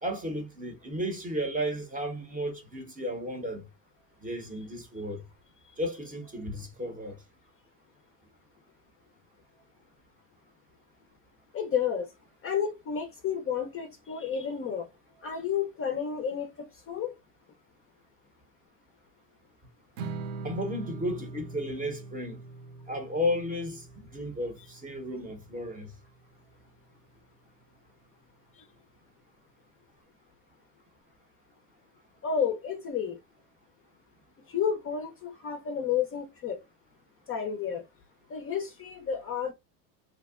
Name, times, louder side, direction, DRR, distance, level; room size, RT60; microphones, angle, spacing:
voice 1, 0.0-3.7 4.2-5.2 5.8-7.2 20.4-22.4 22.9-25.9, equal, 15° right, 0.7 m, -33 dB
voice 2, 11.5-12.1 12.4-14.9 15.2-17.1 32.2-33.2 34.5-36.6 37.3-37.8 38.3-39.5, left 7 dB, 30° left, 0.5 m, -31 dB
Strum, 20.0-26.2, right 4 dB, 70° right, 0.6 m, -42 dB
2.7 x 2.1 x 2.3 m
hypercardioid pair, 85°, 49 cm